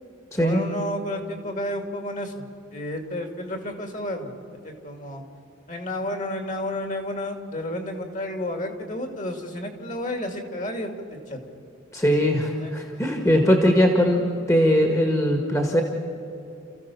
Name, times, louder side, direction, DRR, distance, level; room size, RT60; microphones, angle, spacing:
voice 1, 0.4-2.4 2.7-4.4 4.6-5.2 5.7-10.9 11.3-11.4 12.6-12.8 13.4-13.5, left 1 dB, 40° left, 5 dB, 2.4 m, -31 dB
voice 2, 11.9-15.8, equal, 15° left, 3 dB, 1.7 m, -20 dB
30.0 x 14.5 x 7.0 m, 2.8 s
head